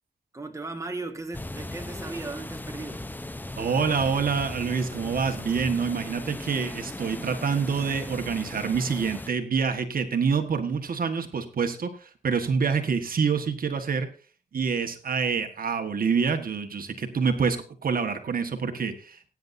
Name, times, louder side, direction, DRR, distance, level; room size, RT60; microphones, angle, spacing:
voice 1, 0.3-3.1, right 3 dB, 20° right, 1.6 m, -36 dB
sound 1, 1.3-9.3, left 1 dB, 10° left, 0.8 m, -38 dB
voice 2, 3.6-14.1 14.5-17.6 17.8-19.3, right 5 dB, 65° right, 1.5 m, -26 dB
19.5 x 9.6 x 2.7 m
cardioid pair, 85°, 16 cm